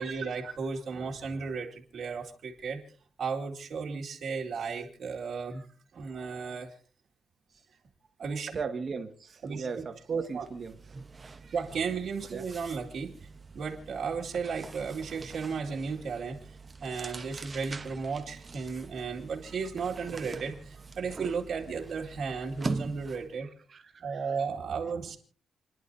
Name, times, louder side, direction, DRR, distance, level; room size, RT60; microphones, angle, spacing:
voice 1, 0.0-2.8 3.2-5.6 5.9-6.8 8.2-8.6 9.4-9.8 10.2-10.5 11.5-13.3 13.5-23.5 24.0-25.2, right 5 dB, 60° right, 2.2 m, -34 dB
voice 2, 8.5-10.8 11.4-11.5 12.3-12.5 23.7-24.3, right 5 dB, 40° right, 1.6 m, -36 dB
sound 1, 9.5-9.7 10.0-23.4, right 3 dB, 25° right, 1.0 m, -43 dB
29.5 x 11.0 x 2.7 m
wide cardioid pair, 155°, 0 cm